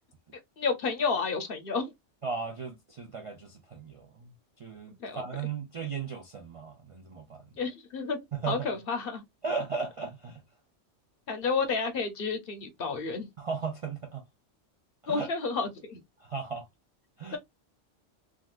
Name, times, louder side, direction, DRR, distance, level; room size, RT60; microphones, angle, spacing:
voice 1, 0.6-1.9 5.0-5.2 7.6-8.2 8.5-9.2 11.3-13.3 15.1-16.0 17.3-17.4, left 4 dB, 55° left, 0.9 m, -30 dB
voice 2, 2.2-4.3 4.6-7.4 8.3-8.7 9.4-10.4 13.4-14.2 15.0-15.3 16.2-16.7 17.2-17.4, right 5 dB, 50° right, 0.4 m, -36 dB
3.7 x 2.3 x 2.3 m
omnidirectional pair, 1.2 m